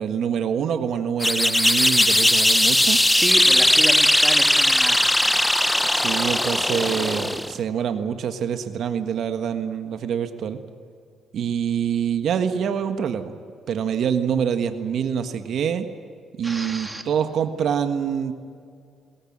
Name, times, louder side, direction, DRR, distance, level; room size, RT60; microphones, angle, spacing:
voice 1, 0.0-3.0 5.9-10.6 11.3-13.3 13.7-15.9 16.4-18.3, right 8 dB, 70° right, 8 dB, 1.6 m, -25 dB
sound 1, 1.2-7.6, left 1 dB, 10° left, 0.6 m, -19 dB
voice 2, 3.1-5.5 16.4-17.0, right 2 dB, 15° right, 5 dB, 2.3 m, -31 dB
21.0 x 18.0 x 8.8 m, 2.3 s
cardioid pair, 90°, 0 cm